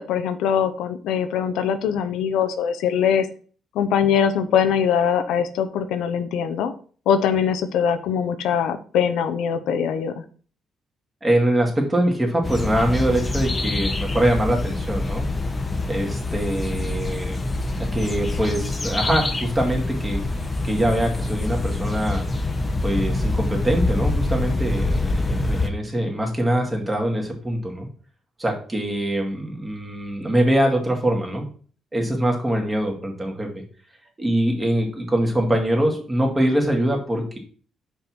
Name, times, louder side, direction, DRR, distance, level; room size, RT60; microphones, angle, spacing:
voice 1, 0.0-3.3 3.7-6.7 7.1-10.1, left 8 dB, 90° left, 9 dB, 0.7 m, -22 dB
voice 2, 11.2-15.2 15.9-17.4 17.9-20.2 20.6-22.2 22.8-27.9 28.4-31.5 31.9-33.6 34.2-37.4, right 1 dB, 20° right, 1 dB, 2.2 m, -23 dB
sound 1, 12.4-25.7, left 2 dB, 25° left, 0.9 m, -25 dB
5.4 x 4.6 x 6.0 m, 0.42 s
cardioid pair, 90°, 0 cm